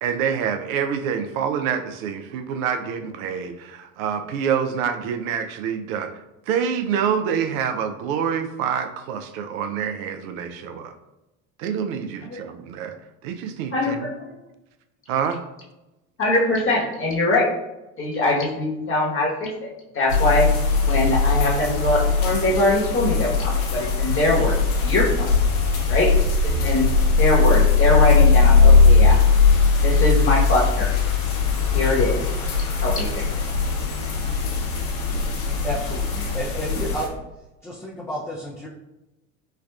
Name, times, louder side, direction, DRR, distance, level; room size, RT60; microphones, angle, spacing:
voice 1, 0.0-6.1 6.5-10.9 11.6-13.0 13.2-14.1 15.1-15.4, right 7 dB, 70° right, 7 dB, 0.5 m, -26 dB
voice 2, 13.7-14.3 16.2-17.5 18.0-20.5 20.8-25.3 25.9-26.2 26.4-26.9 27.2-29.2 29.8-31.0 31.7-32.3 32.8-33.1, left 2 dB, 30° left, -3 dB, 1.2 m, -22 dB
sound 1, 20.1-37.1, left 4 dB, 80° left, 0.9 m, -19 dB
voice 3, 35.6-37.2 37.6-38.7, equal, 5° left, -6 dB, 0.4 m, -31 dB
4.5 x 2.3 x 2.3 m, 0.99 s
hypercardioid pair, 80°, 42 cm